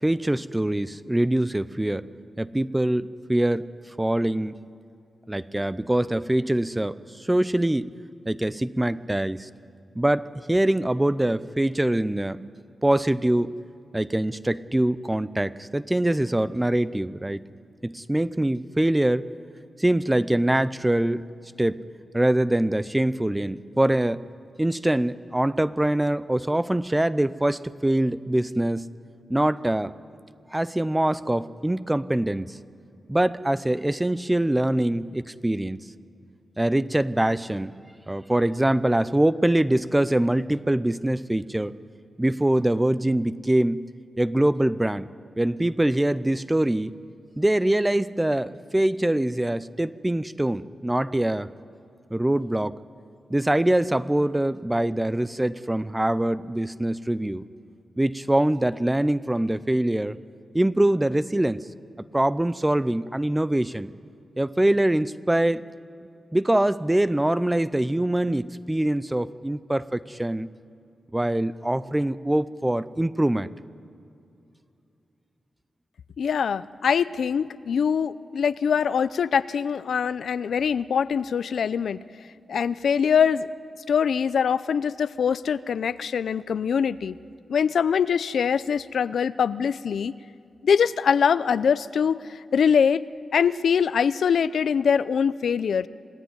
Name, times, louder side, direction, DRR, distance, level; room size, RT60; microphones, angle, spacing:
voice 1, 0.0-2.1 2.4-3.7 4.0-4.6 5.3-7.9 8.3-9.5 10.0-12.5 12.8-13.6 13.9-17.4 17.8-19.3 19.8-21.2 21.6-21.8 22.1-24.2 24.6-28.9 29.3-29.9 30.5-32.6 33.1-35.8 36.6-37.8 38.1-41.7 42.2-43.9 44.2-45.1 45.4-46.9 47.4-51.5 52.1-52.8 53.3-57.4 58.0-60.2 60.5-61.6 62.1-63.9 64.4-65.6 66.3-70.5 71.1-73.5, right 1 dB, 10° right, 16 dB, 0.5 m, -24 dB
voice 2, 76.2-82.0 82.5-83.5 83.9-87.2 87.5-90.1 90.6-93.0 93.3-95.9, left 7 dB, 85° left, 16 dB, 0.6 m, -23 dB
27.5 x 18.0 x 9.8 m, 2.6 s
wide cardioid pair, 140°, 0 cm